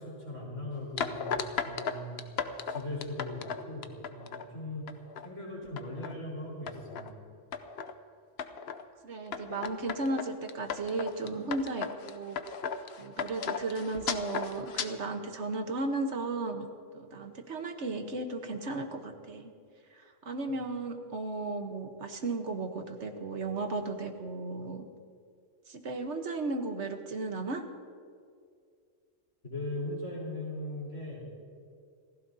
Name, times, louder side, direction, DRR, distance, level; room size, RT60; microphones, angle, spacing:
voice 1, 0.0-2.2 2.7-4.9 5.2-7.2 29.4-31.4, left 1 dB, 80° left, -4 dB, 4.5 m, -39 dB
sound 1, 1.0-4.4 4.9-5.3 5.6-6.1 6.7-7.1 7.5-7.9 8.4-8.8 9.3-14.9, left 6 dB, 60° left, 0.9 m, -36 dB
voice 2, 9.0-12.4 13.0-19.5 19.9-24.8 25.7-27.6, right 3 dB, 70° right, 5 dB, 1.4 m, -35 dB
29.0 x 15.5 x 2.8 m, 2.2 s
omnidirectional pair, 1.2 m